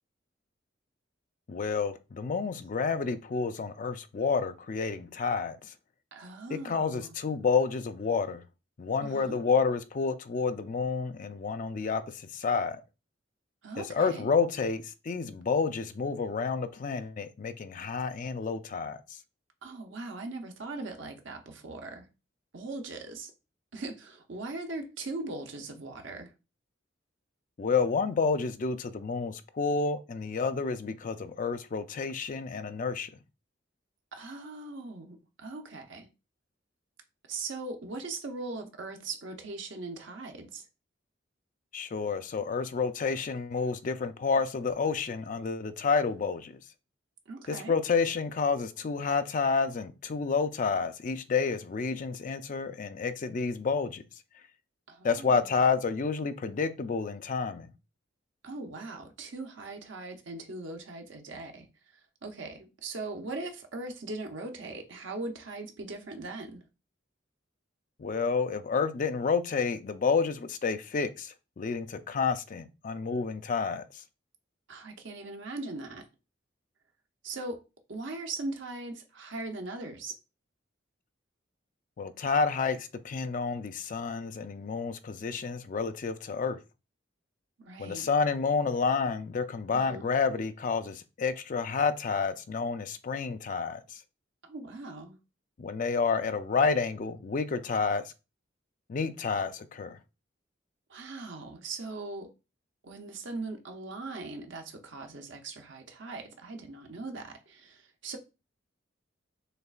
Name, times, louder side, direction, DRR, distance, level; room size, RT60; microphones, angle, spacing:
voice 1, 1.5-5.7 6.5-8.4 8.8-12.8 13.8-19.0 27.6-33.1 41.7-46.5 47.5-54.0 55.0-57.7 68.0-73.8 82.0-86.6 87.8-93.8 95.6-98.0 98.9-100.0, left 5 dB, 45° left, 0.4 m, -29 dB
voice 2, 6.1-7.1 9.0-9.4 13.6-14.2 19.6-22.1 22.5-23.3 23.7-26.3 34.1-36.1 37.3-40.6 47.3-47.8 54.9-55.5 58.4-61.7 62.2-66.6 74.7-76.1 77.2-77.6 77.9-80.2 87.6-88.1 89.7-90.1 94.4-95.2 100.9-102.3 102.8-108.2, right 3 dB, 75° right, 0.8 m, -40 dB
6.5 x 2.3 x 2.4 m
head